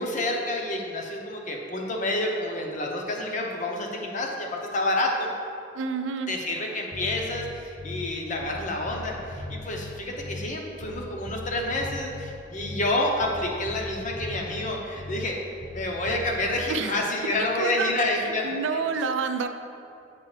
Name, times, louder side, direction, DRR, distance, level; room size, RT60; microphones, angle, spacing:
voice 1, 0.0-5.3 6.3-15.4 15.7-18.8, left 1 dB, 40° left, 1 dB, 0.7 m, -29 dB
voice 2, 5.7-6.3 16.7-17.0 17.6-17.9 18.4-19.5, right 5 dB, 80° right, 8 dB, 0.4 m, -28 dB
Bass guitar, 6.9-8.2 8.4-10.6 10.8-13.0 13.2-15.4 15.6-16.5, left 2 dB, 15° left, 0.4 m, -39 dB
7.4 x 4.8 x 3.2 m, 2.6 s
head